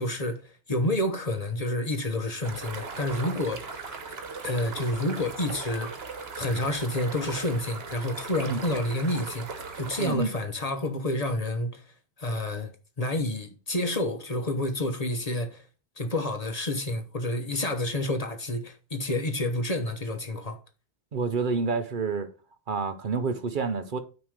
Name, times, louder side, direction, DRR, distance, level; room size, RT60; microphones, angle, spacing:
voice 1, 0.0-3.9 4.4-5.9 6.3-11.8 12.2-12.7 13.0-15.6 16.0-20.6, left 1 dB, 40° left, 1.0 m, -29 dB
sound 1, 2.4-10.1, right 4 dB, 70° right, 1.4 m, -38 dB
voice 2, 10.0-10.3 21.1-22.3 22.7-24.0, right 4 dB, 55° right, 0.8 m, -28 dB
9.2 x 3.1 x 6.4 m
omnidirectional pair, 1.1 m